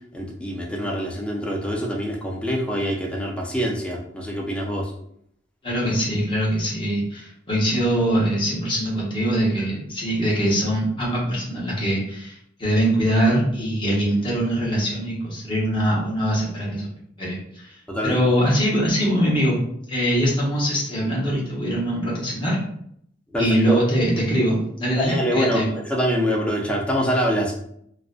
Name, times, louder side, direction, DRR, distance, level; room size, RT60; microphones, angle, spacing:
voice 1, 0.1-4.9 17.9-18.2 23.3-23.8 25.0-27.5, equal, 5° left, -2 dB, 0.4 m, -25 dB
voice 2, 5.6-16.9 17.2-17.7 18.0-19.6 19.9-22.6 23.4-25.7, equal, 25° left, -5 dB, 0.8 m, -22 dB
2.4 x 2.1 x 2.3 m, 0.69 s
head